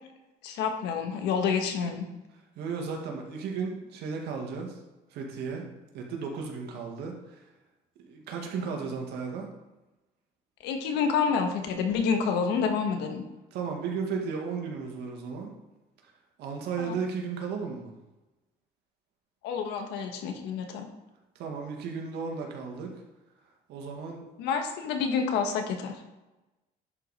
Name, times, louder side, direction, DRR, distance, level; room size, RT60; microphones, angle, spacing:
voice 1, 0.4-2.0 10.6-13.2 16.8-16.9 19.4-20.9 24.4-25.9, left 6 dB, 90° left, 5 dB, 1.4 m, -28 dB
voice 2, 2.6-4.8 5.1-5.6 5.9-7.4 8.0-9.5 13.5-15.5 16.4-17.9 21.4-22.9 23.7-24.2, right 5 dB, 80° right, 1 dB, 1.9 m, -34 dB
11.0 x 4.9 x 4.2 m, 1.0 s
cardioid pair, 110°, 17 cm